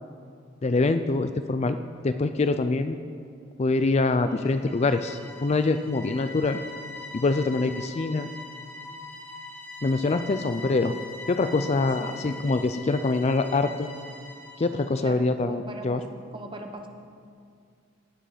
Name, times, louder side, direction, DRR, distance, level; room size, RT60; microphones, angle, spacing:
voice 1, 0.6-1.8 2.0-3.0 3.6-6.6 7.1-8.3 9.8-11.0 11.3-13.9 14.6-16.0, left 3 dB, 35° left, 10 dB, 0.4 m, -24 dB
sound 1, 4.2-15.0, left 2 dB, 15° left, 2.3 m, -42 dB
voice 2, 15.0-16.0 16.3-16.9, right 1 dB, 25° right, 4 dB, 1.0 m, -39 dB
17.5 x 9.2 x 5.0 m, 2.3 s
head